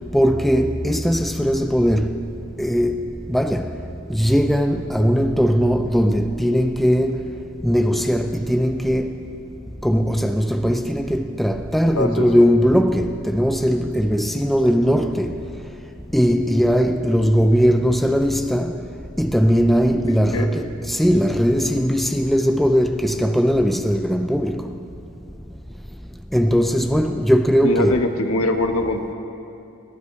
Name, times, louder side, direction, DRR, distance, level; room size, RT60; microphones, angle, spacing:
voice 1, 0.1-2.2 2.6-3.0 3.3-3.7 4.1-7.3 7.6-9.3 9.8-15.4 16.1-18.7 19.2-24.6 26.3-28.0, equal, ahead, 0.3 m, -19 dB
voice 2, 27.6-29.1, left 1 dB, 70° left, 1.2 m, -22 dB
22.0 x 15.5 x 3.2 m
head